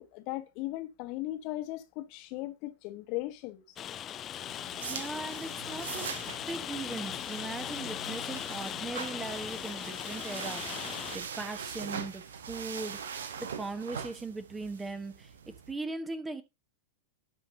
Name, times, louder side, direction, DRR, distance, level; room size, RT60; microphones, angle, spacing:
voice 1, 0.0-3.6, left 17 dB, 45° left, 1.3 m, -37 dB
Rain, 3.8-11.2, left 10 dB, 30° left, 0.6 m, -38 dB
sound 1, 4.4-15.7, right 7 dB, 65° right, 1.1 m, -42 dB
voice 2, 4.8-15.3 15.7-16.4, right 3 dB, 10° right, 1.4 m, -39 dB
18.0 x 6.1 x 2.8 m
figure-of-eight pair, 90°, 0 cm